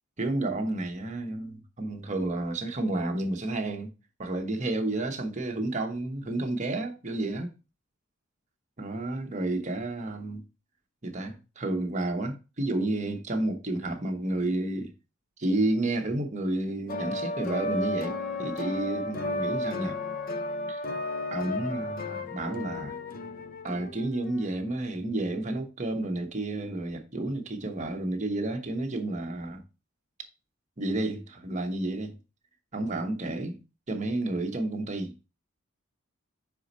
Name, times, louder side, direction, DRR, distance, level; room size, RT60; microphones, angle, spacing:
voice 1, 0.2-3.9 4.2-7.5 8.8-10.4 11.0-14.9 15.4-20.0 20.7-20.8 21.3-23.0 23.6-29.6 30.8-32.2 32.7-33.6 33.9-35.1, right 2 dB, 35° right, 1.0 m, -31 dB
sound 1, 16.9-24.5, left 2 dB, 40° left, 0.5 m, -33 dB
5.1 x 4.7 x 4.0 m
head